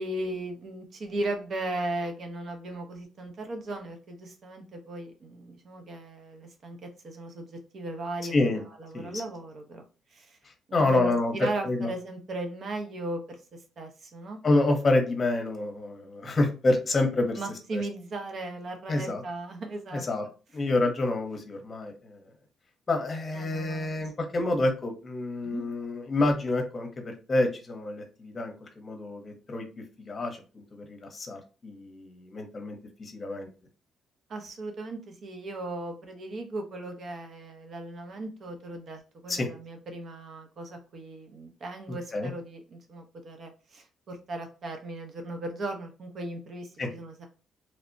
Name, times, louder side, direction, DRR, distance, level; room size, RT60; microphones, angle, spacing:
voice 1, 0.0-9.8 10.1-10.4 10.7-13.4 13.8-14.4 17.4-20.0 23.3-24.6 25.4-25.7 34.3-47.3, right 2 dB, 55° right, 4 dB, 0.7 m, -37 dB
voice 2, 8.3-8.6 8.9-9.2 10.7-11.3 11.6-11.9 14.4-17.4 17.7-17.8 18.9-19.2 19.9-20.2 20.5-22.2 22.9-29.7 30.0-30.4 30.7-33.5 39.3-39.5 42.1-42.3 46.8-46.9, left 2 dB, 35° left, 4 dB, 0.8 m, -28 dB
3.1 x 2.1 x 2.6 m, 0.34 s
cardioid pair, 90°, 0 cm